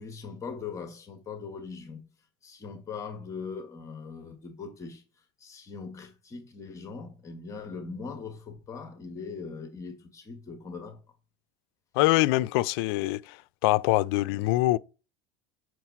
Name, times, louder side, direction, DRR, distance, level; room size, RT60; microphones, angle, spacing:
voice 1, 0.0-2.1 2.4-5.0 5.4-11.0, left 5 dB, 25° left, 1.6 m, -40 dB
voice 2, 11.9-13.4 13.6-14.8, left 18 dB, 75° left, 0.4 m, -24 dB
6.3 x 4.6 x 5.8 m
supercardioid pair, 125°, 13 cm